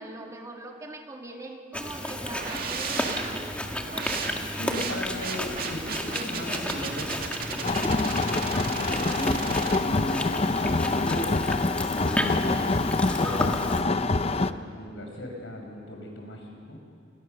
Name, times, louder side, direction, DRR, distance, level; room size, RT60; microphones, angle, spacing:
voice 1, 0.0-4.1, right 2 dB, 15° right, 1 dB, 2.2 m, -42 dB
Chewing mastication, 1.7-13.8, left 1 dB, 5° left, 1.7 m, -33 dB
sound 1, 2.3-9.8, right 4 dB, 50° right, 2.3 m, -35 dB
voice 2, 4.5-8.0 8.6-11.3 11.9-16.8, left 1 dB, 85° left, 1 dB, 5.9 m, -37 dB
sound 2, 7.6-14.5, left 3 dB, 35° left, 0.6 m, -26 dB
29.5 x 20.5 x 6.8 m, 2.3 s
head